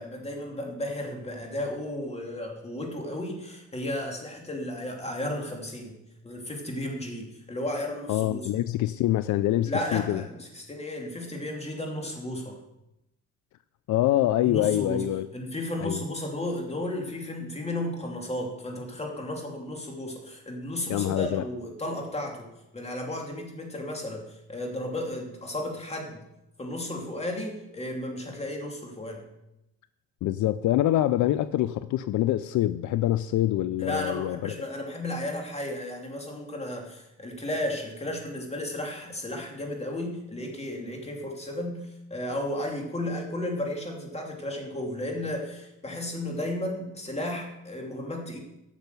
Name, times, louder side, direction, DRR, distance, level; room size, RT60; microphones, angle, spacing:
voice 1, 0.0-6.0 6.2-8.4 9.7-12.6 14.4-15.0 15.3-26.2 26.6-29.2 33.8-48.4, left 1 dB, 20° left, 2.8 m, -34 dB
voice 2, 8.1-10.2 13.9-15.3 15.8-16.0 20.9-21.4 30.2-34.5, left 14 dB, 75° left, 0.5 m, -25 dB
10.5 x 6.8 x 6.8 m
cardioid pair, 90°, 30 cm